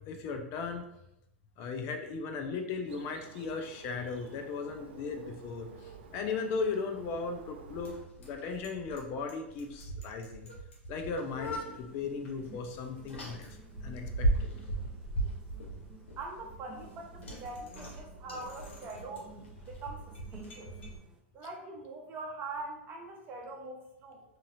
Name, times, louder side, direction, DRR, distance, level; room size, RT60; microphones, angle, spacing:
voice 1, 0.1-0.8 1.6-10.5 10.9-13.5 13.8-14.5, left 4 dB, 45° left, 4 dB, 0.5 m, -37 dB
Bird, 2.9-8.0, right 6 dB, 65° right, 0.4 m, -52 dB
Bicycle, 4.7-21.0, right 1 dB, 70° left, 0.9 m, -39 dB
sound 1, 11.2-21.2, right 3 dB, 10° right, 0.5 m, -54 dB
voice 2, 16.1-19.3 19.6-20.8 21.3-24.2, right 2 dB, 35° right, 0 dB, 0.8 m, -43 dB
2.8 x 2.7 x 2.6 m, 0.82 s
hypercardioid pair, 100°, 6 cm